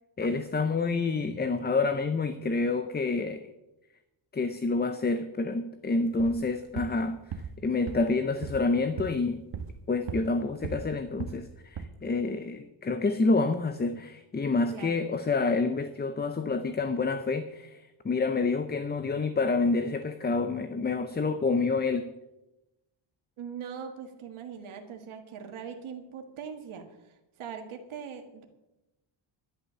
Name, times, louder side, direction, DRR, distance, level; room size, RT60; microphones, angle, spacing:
voice 1, 0.2-3.4 4.3-9.4 9.9-22.1, left 3 dB, 20° left, 9 dB, 0.6 m, -28 dB
sound 1, 6.1-6.4 6.7-7.0 7.3-7.6 7.9-8.1 8.4-8.7 9.0-9.2 9.5-10.4 10.6-10.9 11.2-11.5 11.7-11.9, right 6 dB, 65° right, 1.3 m, -37 dB
voice 2, 14.7-15.1 23.4-28.5, right 7 dB, 85° right, 4 dB, 1.8 m, -41 dB
11.5 x 11.5 x 6.8 m, 0.98 s
wide cardioid pair, 145°, 48 cm